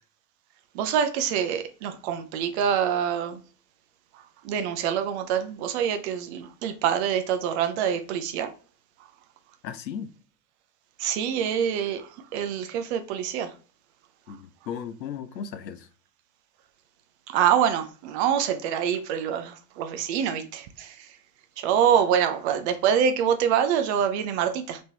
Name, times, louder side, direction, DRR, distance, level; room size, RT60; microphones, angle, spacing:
voice 1, 0.7-3.4 4.4-8.5 11.0-13.5 17.3-21.1 21.6-24.8, right 8 dB, 45° right, 0.5 m, -25 dB
voice 2, 9.6-10.1 14.3-15.9, left 8 dB, 80° left, 0.6 m, -36 dB
3.5 x 3.0 x 2.8 m
figure-of-eight pair, 80°, 50 cm